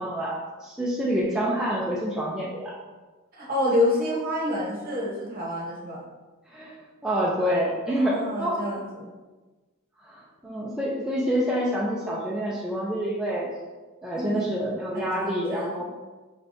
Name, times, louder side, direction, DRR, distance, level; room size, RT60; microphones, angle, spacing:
voice 1, 0.0-2.7 6.5-6.8 7.0-8.7 10.0-13.5 14.0-15.8, equal, 5° right, -5 dB, 0.4 m, -27 dB
voice 2, 3.3-6.0 7.9-9.1 14.1-14.5 14.9-15.8, left 1 dB, 45° right, -3 dB, 0.9 m, -28 dB
4.2 x 3.4 x 2.6 m, 1.3 s
head